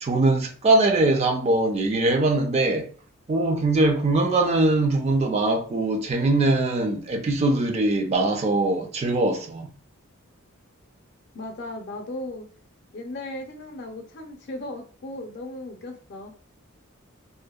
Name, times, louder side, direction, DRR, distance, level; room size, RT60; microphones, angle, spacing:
voice 1, 0.0-2.9 3.3-9.7, right 2 dB, 30° right, 0.3 m, -22 dB
voice 2, 11.3-12.5 12.9-16.3, left 1 dB, 55° left, 0.5 m, -36 dB
2.6 x 2.1 x 2.2 m
head